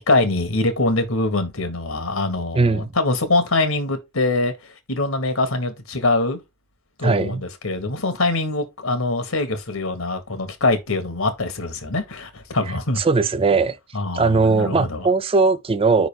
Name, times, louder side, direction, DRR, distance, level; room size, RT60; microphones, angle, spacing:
voice 1, 0.1-6.4 7.0-13.0 13.9-15.1, left 2 dB, 85° left, 1.7 m, -23 dB
voice 2, 2.5-2.9 7.0-7.4 13.0-13.8 14.1-16.1, right 4 dB, 25° right, 0.4 m, -19 dB
5.4 x 4.0 x 5.1 m
head